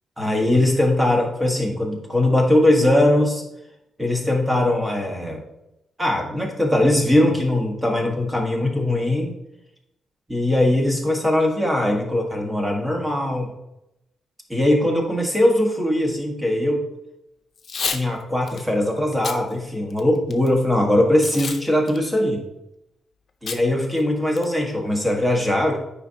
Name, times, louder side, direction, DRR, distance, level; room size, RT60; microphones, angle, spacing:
voice 1, 0.2-3.4 4.0-5.4 6.0-9.3 10.3-13.5 14.5-16.9 17.8-22.4 23.4-25.8, left 1 dB, 10° right, 1 dB, 1.5 m, -20 dB
Packing tape duct tape / Tearing, 17.6-18.0 18.5-18.6 19.1-19.4 19.9-20.5 21.2-21.6 21.9-22.0 23.5-23.6 24.0-24.1 24.4-24.7, left 6 dB, 55° left, 0.7 m, -29 dB
9.2 x 5.1 x 2.8 m, 0.87 s
cardioid pair, 110°, 0 cm